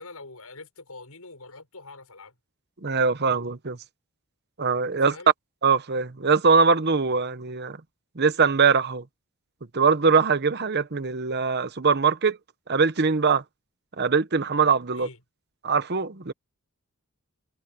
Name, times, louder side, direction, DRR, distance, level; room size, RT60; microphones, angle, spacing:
voice 1, 0.0-2.4 4.9-5.3 14.9-15.2, left 3 dB, 80° left, 7.0 m, -44 dB
voice 2, 2.8-3.8 4.6-5.1 5.6-7.8 8.2-9.0 9.7-12.4 12.7-13.4 14.0-15.1 15.6-16.3, right 5 dB, 50° right, 1.0 m, -22 dB
head